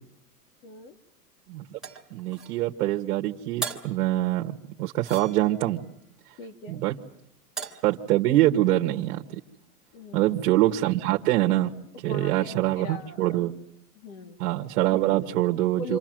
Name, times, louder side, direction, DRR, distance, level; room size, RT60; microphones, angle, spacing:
voice 1, 0.6-1.0 6.4-6.8 9.9-10.5 11.9-13.4 13.9-14.4 15.7-16.0, left 2 dB, 70° left, 7 dB, 3.3 m, -40 dB
voice 2, 1.5-1.8 2.1-5.8 6.7-6.9 7.8-9.4 10.1-11.7 12.0-13.5 14.4-16.0, right 15 dB, 70° right, 3 dB, 1.6 m, -24 dB
sound 1, 1.8-2.6 3.6-4.0 5.0-5.7 7.6-7.9, right 5 dB, ahead, 2.5 m, -36 dB
28.5 x 26.0 x 7.7 m, 0.76 s
supercardioid pair, 170°, 45 cm